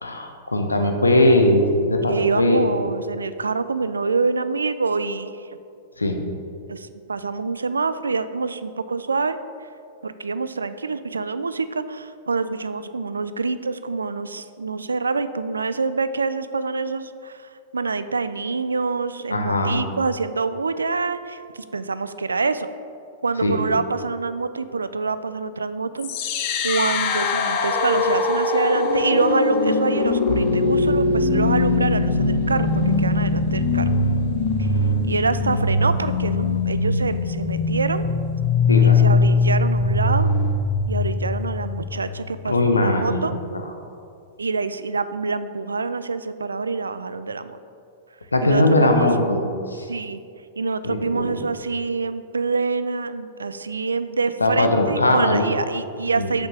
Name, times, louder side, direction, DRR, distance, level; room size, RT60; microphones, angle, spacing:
voice 1, 0.0-2.7 6.0-6.2 19.3-19.8 23.4-23.6 38.7-39.0 42.5-43.4 48.3-49.4 49.7-49.9 50.8-51.4 54.4-55.4 56.1-56.3, left 1 dB, 85° left, 4 dB, 0.9 m, -20 dB
voice 2, 2.1-5.5 6.7-9.7 10.0-22.7 23.2-26.3 26.6-33.9 34.6-34.7 35.0-38.1 38.8-40.3 40.9-43.3 44.4-47.6 48.4-49.1 49.9-50.2 50.6-56.5, right 4 dB, 80° right, 13 dB, 0.4 m, -26 dB
sound 1, 26.0-42.0, left 3 dB, 45° left, 0.8 m, -21 dB
sound 2, 30.3-41.1, right 10 dB, 55° right, 1.2 m, -33 dB
6.6 x 5.5 x 6.0 m, 2.4 s
figure-of-eight pair, 100°, 0 cm